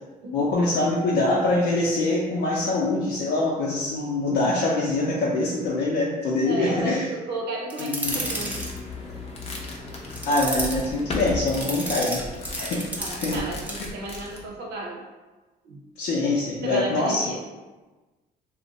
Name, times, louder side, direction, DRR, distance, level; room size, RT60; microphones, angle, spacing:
voice 1, 0.3-7.0 7.8-8.2 10.3-12.2 12.6-12.8 13.1-13.4 16.0-17.3, left 2 dB, 75° left, -6 dB, 0.6 m, -24 dB
voice 2, 6.4-8.7 13.0-15.0 15.6-15.8 16.6-17.5, right 2 dB, 75° right, -1 dB, 0.7 m, -34 dB
sound 1, 7.7-8.7 10.1-10.8 11.5-13.4 13.7-13.8, right 1 dB, 10° right, 0.6 m, -31 dB
sound 2, 8.0-14.5, left 2 dB, 35° left, 0.6 m, -36 dB
2.4 x 2.1 x 3.9 m, 1.2 s
cardioid pair, 110°, 17 cm